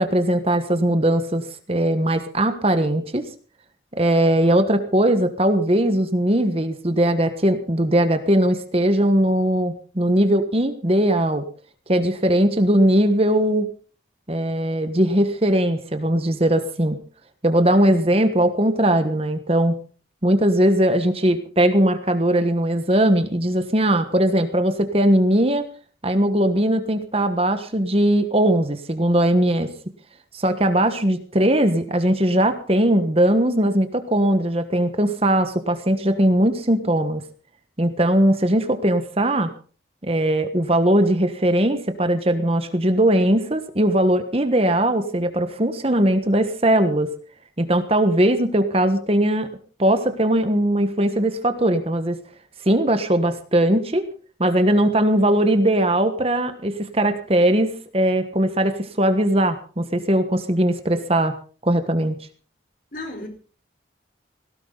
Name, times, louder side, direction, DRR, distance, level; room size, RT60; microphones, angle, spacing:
voice 1, 0.0-3.2 4.0-11.5 11.9-13.7 14.3-17.0 17.4-19.7 20.2-25.7 26.0-29.7 30.3-37.2 37.8-39.5 40.0-47.1 47.6-49.5 49.8-52.2 52.6-54.0 54.4-61.3 61.6-62.2, right 1 dB, 30° right, 9 dB, 1.4 m, -19 dB
voice 2, 62.9-63.3, left 1 dB, 50° left, 4 dB, 4.3 m, -35 dB
18.5 x 16.5 x 4.0 m, 0.39 s
head